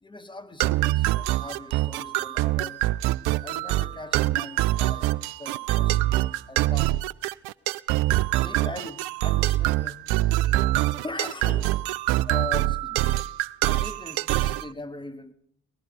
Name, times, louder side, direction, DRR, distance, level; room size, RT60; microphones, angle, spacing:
voice 1, 0.0-2.8 3.4-7.0 8.4-10.6 11.0-11.8 12.3-13.1 13.6-15.3, left 2 dB, 10° left, 1.5 m, -40 dB
sound 1, 0.6-14.7, right 16 dB, 65° right, 0.5 m, -24 dB
19.0 x 12.5 x 5.2 m
figure-of-eight pair, 40°, 41 cm